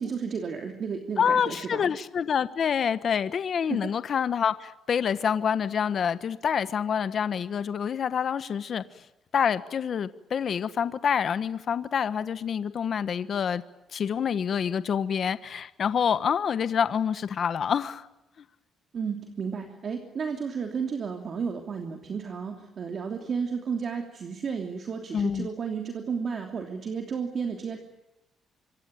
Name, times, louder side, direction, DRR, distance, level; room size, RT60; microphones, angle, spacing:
voice 1, 0.0-1.9 3.7-3.9 18.9-27.8, right 6 dB, 40° right, 4 dB, 3.0 m, -32 dB
voice 2, 1.2-8.8 9.3-13.6 13.9-18.1 25.1-25.5, left 7 dB, 45° left, 13 dB, 1.2 m, -27 dB
26.5 x 24.5 x 9.0 m, 0.91 s
cardioid pair, 145°, 0 cm